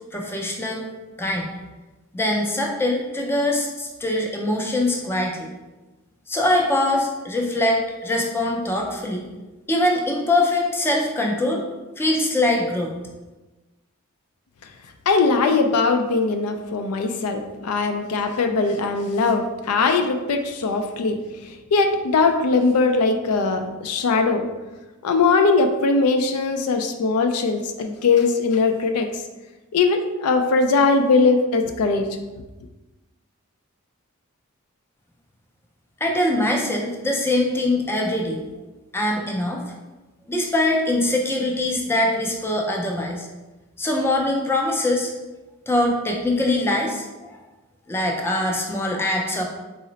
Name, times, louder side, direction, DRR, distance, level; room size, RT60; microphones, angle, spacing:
voice 1, 0.1-0.9 1.2-1.5 2.1-5.5 6.3-9.3 9.7-11.6 12.0-12.9 36.0-38.4 38.9-39.6 40.3-43.3 43.8-45.1 45.7-47.4 47.9-49.4, left 1 dB, 10° left, 1 dB, 0.4 m, -23 dB
voice 2, 15.1-21.2 21.7-24.5 25.0-29.1 29.7-32.1, left 4 dB, 80° left, 6 dB, 0.4 m, -20 dB
3.8 x 2.0 x 3.9 m, 1.1 s
head